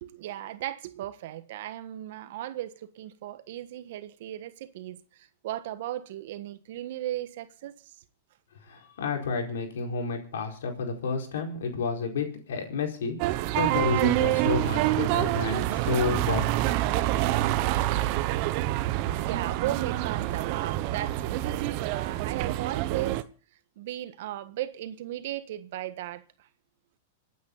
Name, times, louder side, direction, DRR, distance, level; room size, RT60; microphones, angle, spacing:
voice 1, 0.0-8.0 19.2-23.2 23.8-26.5, right 13 dB, 65° right, 1.4 m, -36 dB
voice 2, 8.7-16.7, left 5 dB, 80° left, 4.6 m, -30 dB
sound 1, 13.2-23.2, right 15 dB, 50° right, 1.0 m, -27 dB
27.5 x 9.4 x 4.1 m
hypercardioid pair, 125°, 0 cm